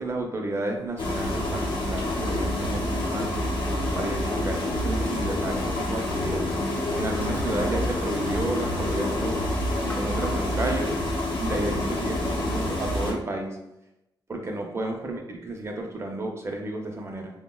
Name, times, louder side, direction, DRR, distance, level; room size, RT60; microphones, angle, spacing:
voice 1, 0.0-3.5 3.9-6.5 7.0-9.5 9.9-11.0 11.4-13.6 14.3-17.3, right 2 dB, 35° right, 2 dB, 0.5 m, -32 dB
sound 1, 1.0-13.1, left 1 dB, 85° left, 0.6 m, -27 dB
Hammer, 6.7-7.7 7.9-8.5 8.7-9.1 9.5-10.8, left 1 dB, 25° left, 0.5 m, -44 dB
3.4 x 2.0 x 2.2 m, 0.91 s
wide cardioid pair, 105°, 8 cm